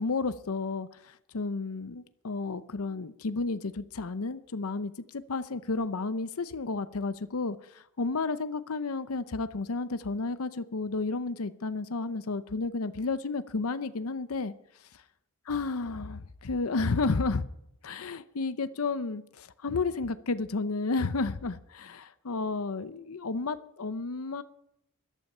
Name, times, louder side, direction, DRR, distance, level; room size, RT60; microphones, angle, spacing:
voice 1, 0.0-14.5 15.5-17.5 17.8-24.4, left 3 dB, 85° left, 0.7 m, -32 dB
14.0 x 12.0 x 5.5 m
head